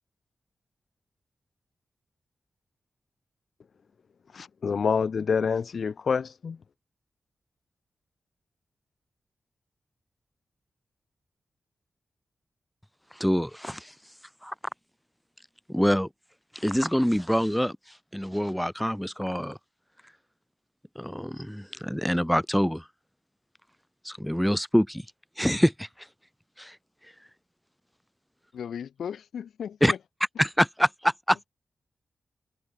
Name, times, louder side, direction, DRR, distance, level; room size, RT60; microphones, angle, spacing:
voice 1, 4.3-6.6, left 6 dB, 65° left, 0.6 m, -27 dB
voice 2, 13.2-13.9 14.4-14.5 15.7-16.1 16.5-17.8 18.1-19.6 21.0-22.8 24.0-25.0 25.4-25.9 26.6-26.8 29.8-29.9 30.4-31.5, equal, 5° left, 0.5 m, -25 dB
voice 3, 28.5-30.0, left 8 dB, 90° left, 2.3 m, -36 dB
cardioid pair, 60°, 0 cm